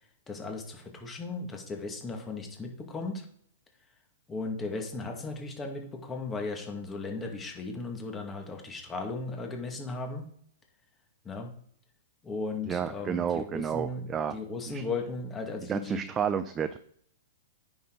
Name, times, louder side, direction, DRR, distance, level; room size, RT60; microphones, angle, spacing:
voice 1, 0.3-3.3 4.3-10.3 11.2-11.5 12.2-16.0, left 3 dB, 15° left, 3 dB, 1.9 m, -36 dB
voice 2, 12.7-14.4 14.7-14.8 15.7-16.8, right 7 dB, 20° right, 10 dB, 0.5 m, -31 dB
9.3 x 6.2 x 3.9 m, 0.63 s
hypercardioid pair, 125°, 0 cm